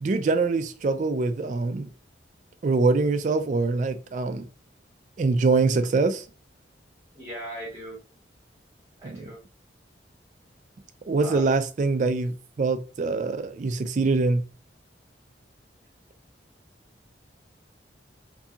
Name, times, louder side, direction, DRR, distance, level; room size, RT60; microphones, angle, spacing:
voice 1, 0.0-1.9 2.6-4.5 5.2-6.2 9.0-9.2 11.1-14.4, right 3 dB, 40° right, 0.3 m, -24 dB
voice 2, 7.1-8.0 9.0-9.4 11.2-11.5, right 1 dB, 15° right, 0.8 m, -38 dB
2.6 x 2.6 x 2.3 m
head